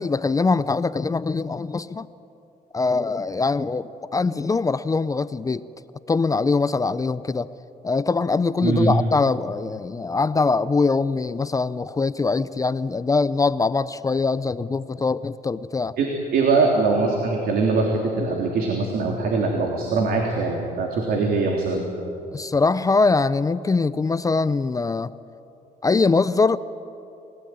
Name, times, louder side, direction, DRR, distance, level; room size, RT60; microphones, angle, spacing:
voice 1, 0.0-2.1 2.7-5.6 6.1-7.5 7.8-16.0 22.3-25.1 25.8-26.6, left 4 dB, 20° left, 15 dB, 0.6 m, -22 dB
voice 2, 8.6-9.0 16.0-21.8, right 3 dB, 65° right, 0 dB, 3.5 m, -22 dB
28.5 x 18.0 x 9.5 m, 2.9 s
cardioid pair, 110°, 17 cm